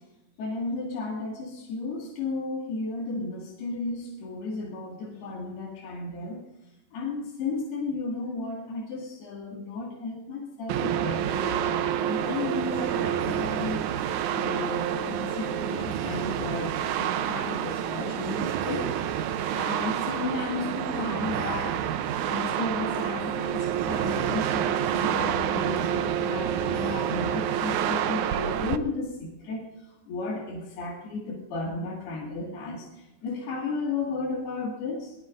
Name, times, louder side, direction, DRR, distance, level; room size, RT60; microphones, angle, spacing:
voice 1, 0.4-6.4 6.9-19.3 19.5-35.2, left 3 dB, 90° left, -2 dB, 4.2 m, -34 dB
sound 1, 10.7-28.8, right 10 dB, 85° right, 1.7 m, -28 dB
22.5 x 21.0 x 2.6 m, 0.96 s
omnidirectional pair, 4.4 m